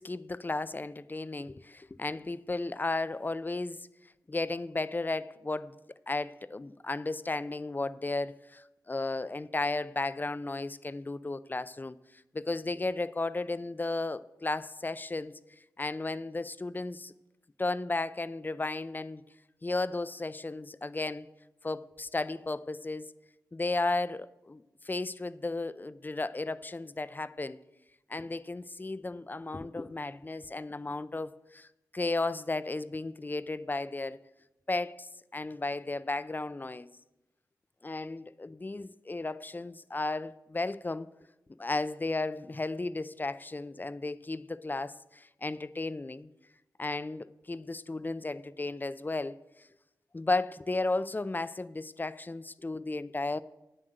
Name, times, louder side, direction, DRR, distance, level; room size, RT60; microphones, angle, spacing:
voice 1, 0.0-3.9 4.3-5.7 6.1-15.4 15.8-17.1 17.6-19.2 19.6-21.3 21.6-23.1 23.5-27.6 28.1-31.7 31.9-34.2 34.7-36.9 37.8-41.1 41.6-46.3 46.8-49.4 50.1-53.4, left 2 dB, 25° left, 0.4 m, -34 dB
9.0 x 7.5 x 7.8 m
cardioid pair, 55°, 7 cm